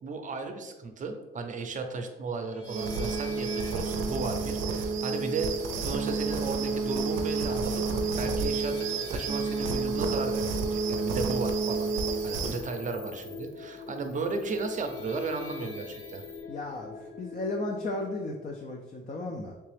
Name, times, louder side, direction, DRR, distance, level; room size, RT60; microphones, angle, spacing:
voice 1, 0.0-11.9 12.2-16.2, right 3 dB, 40° right, 6 dB, 0.5 m, -35 dB
sound 1, 2.4-18.5, left 4 dB, 80° left, 0.6 m, -44 dB
sound 2, 2.7-12.6, right 4 dB, 85° right, 0.5 m, -30 dB
sound 3, 6.0-16.4, left 3 dB, 5° right, 0.7 m, -50 dB
voice 2, 16.5-19.5, left 2 dB, 40° left, 1 dB, 0.5 m, -35 dB
3.3 x 2.9 x 3.2 m, 1.1 s
cardioid pair, 90°, 20 cm